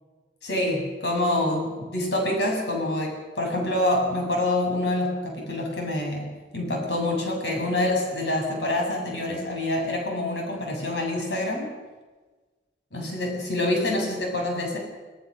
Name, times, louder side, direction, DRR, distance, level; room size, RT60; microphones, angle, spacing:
voice 1, 0.4-11.7 12.9-14.8, left 1 dB, 75° left, 1 dB, 7.7 m, -26 dB
27.5 x 18.5 x 6.7 m, 1.3 s
head